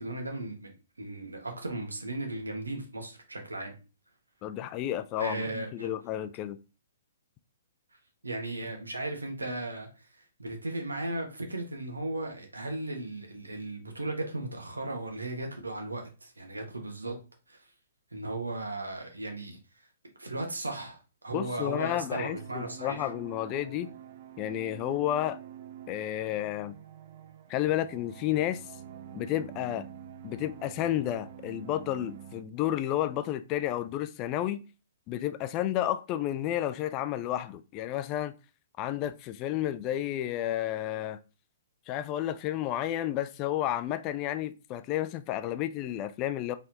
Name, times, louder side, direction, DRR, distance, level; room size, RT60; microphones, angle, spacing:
voice 1, 0.0-3.7 5.2-5.9 8.2-10.1 10.4-17.2 17.5-17.7 18.1-19.6 20.2-23.1, right 2 dB, 85° right, 1.2 m, -36 dB
voice 2, 4.4-6.6 21.3-23.9 24.4-25.4 25.9-26.8 27.5-28.6 29.1-29.9 30.2-34.6 35.1-38.3 38.8-41.2 41.9-46.5, left 12 dB, 30° left, 0.3 m, -31 dB
sound 1, 21.3-32.4, right 9 dB, 50° right, 0.4 m, -47 dB
4.2 x 3.5 x 2.8 m
figure-of-eight pair, 120°, 0 cm